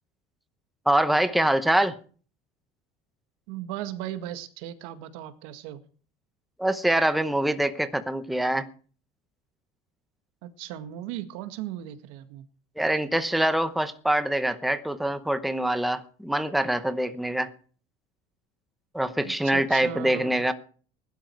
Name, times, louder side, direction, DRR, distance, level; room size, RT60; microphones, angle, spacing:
voice 1, 0.9-1.9 6.6-8.7 12.8-17.5 18.9-20.5, right 1 dB, ahead, 9 dB, 0.9 m, -24 dB
voice 2, 3.5-5.8 10.4-12.4 19.2-20.4, right 12 dB, 85° right, 9 dB, 1.9 m, -37 dB
20.5 x 12.0 x 4.7 m, 0.42 s
cardioid pair, 170°, 17 cm